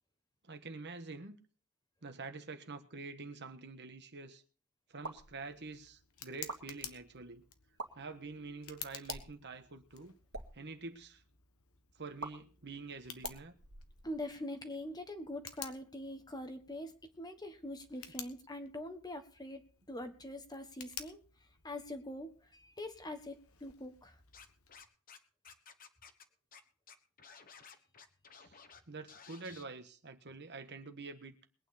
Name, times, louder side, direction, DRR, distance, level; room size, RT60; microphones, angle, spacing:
voice 1, 0.5-1.4 2.0-4.4 4.9-7.4 7.9-10.1 10.5-11.2 11.9-13.5 20.0-20.1 28.3-28.6 28.9-31.3, right 3 dB, 50° right, 1.4 m, -47 dB
sound 1, 5.0-5.3 6.3-6.6 7.6-7.9 9.0-9.4 10.2-10.5 12.2-12.3 13.2-14.3, right 3 dB, 70° right, 2.1 m, -45 dB
Tick, 5.2-24.8, left 9 dB, 70° left, 1.4 m, -53 dB
voice 2, 14.0-21.2 21.6-24.2, left 1 dB, 20° left, 1.4 m, -44 dB
Scratching (performance technique), 24.3-25.2 25.4-26.2 26.5-26.6 26.9-28.8 29.1-29.6, left 6 dB, 40° left, 1.3 m, -55 dB
21.5 x 9.1 x 4.3 m
head